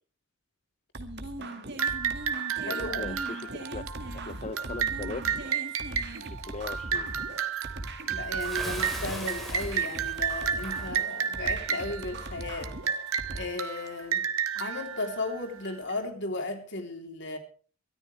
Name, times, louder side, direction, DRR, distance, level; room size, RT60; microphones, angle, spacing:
sound 1, 0.9-13.4, right 2 dB, 55° right, 2.0 m, -40 dB
voice 1, 1.0-1.7 2.6-3.2 8.1-12.7 13.3-14.2 14.5-17.4, left 2 dB, 55° left, 5 dB, 3.4 m, -35 dB
sound 2, 1.8-15.9, right 7 dB, 85° right, 1.4 m, -32 dB
voice 2, 2.6-3.9 4.1-5.3 6.2-7.1, left 3 dB, 35° left, 12 dB, 0.6 m, -39 dB
Bathtub (filling or washing) / Splash splatter, 8.4-10.9, equal, ahead, 4.3 m, -40 dB
23.0 x 14.0 x 3.3 m, 0.40 s
head